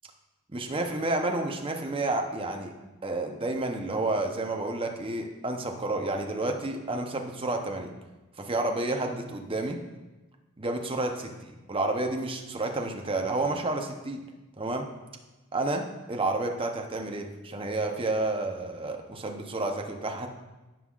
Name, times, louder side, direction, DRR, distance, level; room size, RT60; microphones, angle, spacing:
voice 1, 0.5-2.7 3.0-7.9 8.4-9.8 10.6-11.3 11.7-14.2 14.6-14.9 15.5-20.3, right 2 dB, 25° right, 3 dB, 0.8 m, -30 dB
16.0 x 5.5 x 2.5 m, 1.1 s
head